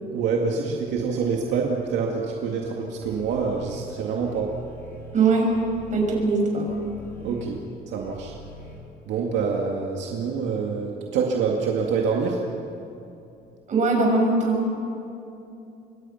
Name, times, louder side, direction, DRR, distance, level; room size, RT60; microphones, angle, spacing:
voice 1, 0.1-4.5 7.2-8.4 9.1-12.4, right 5 dB, 80° right, 0 dB, 2.3 m, -26 dB
sound 1, 3.0-8.8, equal, 10° left, 6.0 m, -44 dB
voice 2, 5.1-5.5 5.9-6.7 13.7-14.8, right 3 dB, 40° right, 0 dB, 6.9 m, -21 dB
27.5 x 23.5 x 5.8 m, 2.7 s
cardioid pair, 145°, 18 cm